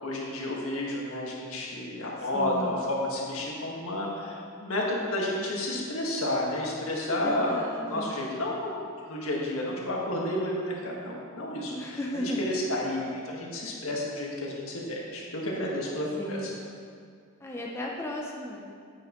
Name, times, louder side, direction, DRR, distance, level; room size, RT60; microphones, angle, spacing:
voice 1, 0.0-16.5, left 1 dB, 75° left, -3 dB, 1.7 m, -31 dB
voice 2, 2.3-2.8 7.1-8.1 11.7-12.4 16.2-16.6 17.4-18.7, left 1 dB, 10° left, -2 dB, 0.6 m, -35 dB
9.0 x 8.8 x 3.1 m, 2.2 s
head